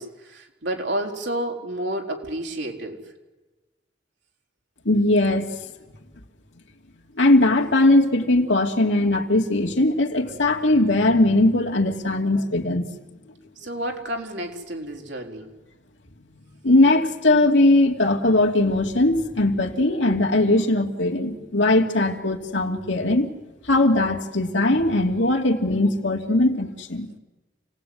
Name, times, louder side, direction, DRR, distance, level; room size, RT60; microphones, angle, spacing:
voice 1, 0.0-3.0 13.6-15.5, right 1 dB, 65° right, 2 dB, 4.2 m, -30 dB
voice 2, 4.8-5.5 7.2-12.8 16.6-23.3 23.7-27.1, left 2 dB, 80° left, 2 dB, 2.7 m, -20 dB
28.5 x 18.5 x 9.6 m, 1.2 s
head